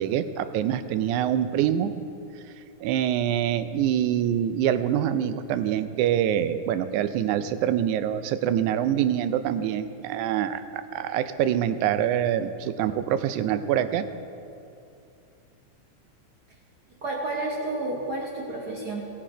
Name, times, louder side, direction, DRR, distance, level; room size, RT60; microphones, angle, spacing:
voice 1, 0.0-1.9 2.8-14.1, right 10 dB, 90° right, 11 dB, 2.0 m, -25 dB
voice 2, 17.0-19.0, right 2 dB, 70° right, -2 dB, 0.9 m, -30 dB
17.5 x 6.7 x 5.0 m, 2.6 s
omnidirectional pair, 3.4 m